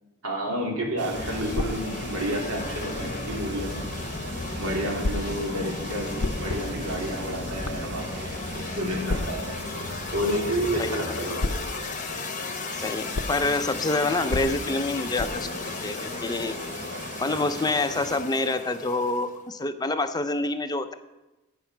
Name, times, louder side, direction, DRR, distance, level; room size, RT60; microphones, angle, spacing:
voice 1, 0.2-3.8 4.6-9.5 10.1-11.5, equal, 75° right, 0 dB, 3.0 m, -30 dB
sound 1, 1.0-18.2, right 4 dB, 50° right, 0.8 m, -40 dB
sound 2, 1.1-19.4, left 4 dB, 35° left, 0.9 m, -35 dB
sound 3, 1.5-3.5 5.0-11.1 11.4-16.9, left 2 dB, 90° left, 0.8 m, -36 dB
voice 2, 12.7-15.5 15.8-16.6 17.2-20.9, left 2 dB, 20° left, 9 dB, 0.5 m, -27 dB
11.5 x 9.0 x 6.0 m, 1.0 s
head